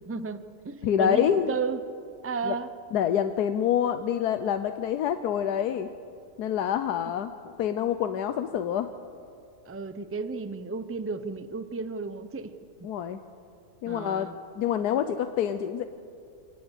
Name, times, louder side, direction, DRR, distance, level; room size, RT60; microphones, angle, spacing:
voice 1, 0.0-1.8 2.2-2.7 9.7-12.5 13.9-14.3, right 4 dB, 15° right, 11 dB, 0.4 m, -33 dB
voice 2, 0.8-1.6 2.4-2.6 2.9-5.9 6.4-7.3 7.6-8.9 12.8-13.2 13.8-14.3 14.6-15.9, left 9 dB, 90° left, 9 dB, 1.3 m, -26 dB
25.5 x 18.5 x 8.1 m, 2.4 s
omnidirectional pair, 1.6 m